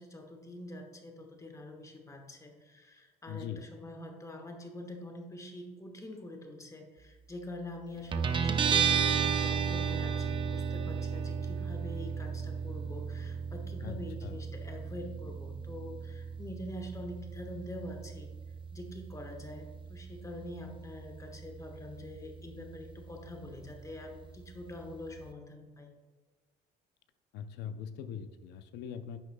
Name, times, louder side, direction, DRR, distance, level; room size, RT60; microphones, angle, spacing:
voice 1, 0.0-18.3 18.7-25.9, left 1 dB, 20° left, 3 dB, 1.3 m, -45 dB
voice 2, 3.3-3.6 13.8-14.0 14.2-14.4 27.3-29.2, left 8 dB, 85° left, 11 dB, 0.6 m, -41 dB
Guitar, 8.1-25.3, right 6 dB, 30° right, 0.5 m, -35 dB
10.0 x 6.5 x 2.2 m, 1.4 s
cardioid pair, 110°, 17 cm